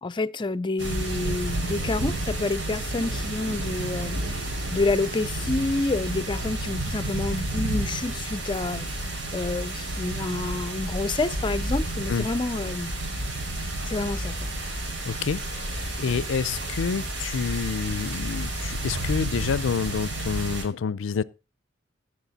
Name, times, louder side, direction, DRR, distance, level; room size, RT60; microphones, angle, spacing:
voice 1, 0.0-12.9 13.8-14.5, left 2 dB, 25° left, 0.5 m, -29 dB
sound 1, 0.8-20.6, right 1 dB, 75° right, 5.0 m, -31 dB
voice 2, 15.1-21.2, left 6 dB, 80° left, 0.4 m, -28 dB
17.0 x 6.4 x 4.0 m
head